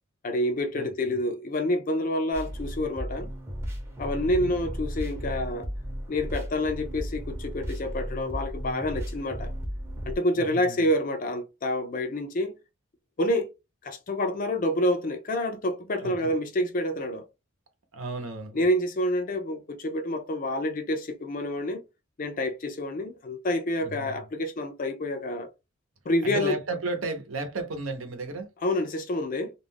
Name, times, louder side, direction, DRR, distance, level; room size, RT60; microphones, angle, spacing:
voice 1, 0.2-3.3 4.0-5.7 6.1-9.5 10.1-12.5 13.2-13.5 13.8-17.2 18.5-21.8 22.2-25.5 26.1-26.6 28.6-29.5, left 1 dB, 40° left, 0.5 m, -28 dB
voice 2, 0.7-1.2 4.2-4.6 10.3-10.8 16.0-16.3 17.9-18.6 23.8-24.2 26.2-28.5, right 2 dB, 75° right, 0.7 m, -34 dB
sound 1, 2.3-10.2, equal, 15° right, 0.7 m, -35 dB
2.4 x 2.2 x 3.3 m
head